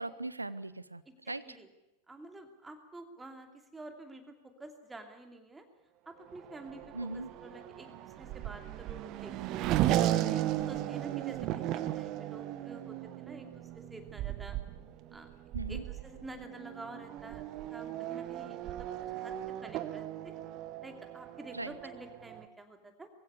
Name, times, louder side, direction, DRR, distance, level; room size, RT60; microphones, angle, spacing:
voice 1, 0.0-1.4 6.9-7.3 15.5-15.8 21.5-21.7, right 2 dB, 80° right, 17 dB, 0.8 m, -39 dB
voice 2, 1.1-1.7 2.1-5.7 6.1-9.7 10.1-14.6 15.1-15.3 15.7-17.4 17.7-18.9 19.1-19.3 19.6-20.3 20.8-23.1, right 2 dB, 10° right, 6 dB, 2.7 m, -49 dB
Race car auto racing / Accelerating revving vroom, 6.3-22.5, right 13 dB, 40° right, 1.1 m, -36 dB
22.0 x 15.5 x 9.8 m, 0.97 s
figure-of-eight pair, 90°, 0 cm